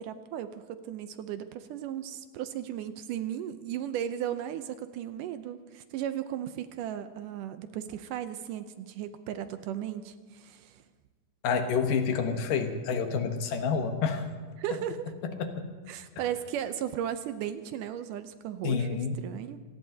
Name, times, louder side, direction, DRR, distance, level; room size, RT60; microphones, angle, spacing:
voice 1, 0.0-10.8 14.6-15.1 15.9-19.6, right 10 dB, 75° right, 10 dB, 2.2 m, -36 dB
voice 2, 11.4-14.2 15.2-15.7 18.6-19.2, left 6 dB, 75° left, 6 dB, 2.8 m, -28 dB
27.0 x 18.5 x 2.8 m, 1.5 s
omnidirectional pair, 4.0 m